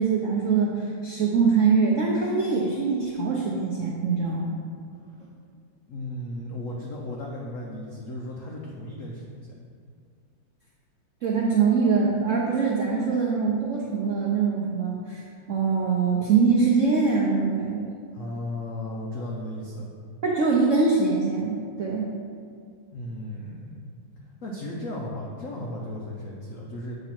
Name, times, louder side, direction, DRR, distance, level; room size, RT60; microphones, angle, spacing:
voice 1, 0.0-4.5 11.2-17.9 20.2-22.1, right 5 dB, 80° right, -3 dB, 0.6 m, -23 dB
voice 2, 5.9-9.5 18.1-19.9 22.9-23.8 24.4-26.9, left 1 dB, 85° left, -2 dB, 0.7 m, -35 dB
7.7 x 3.0 x 5.8 m, 2.2 s
omnidirectional pair, 2.3 m